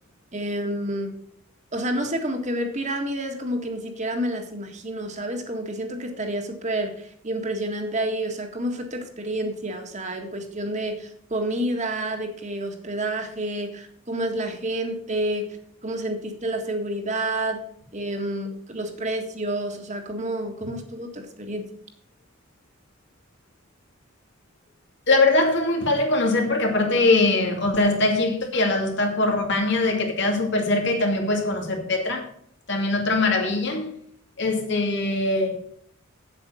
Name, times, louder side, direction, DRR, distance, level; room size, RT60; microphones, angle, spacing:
voice 1, 0.3-1.1 1.7-15.6 15.8-17.6 17.9-21.7, right 1 dB, 35° right, 1.7 m, -29 dB
voice 2, 25.1-32.3 32.7-33.9 34.4-35.6, left 2 dB, 60° left, 2.5 m, -22 dB
8.4 x 8.1 x 6.4 m
head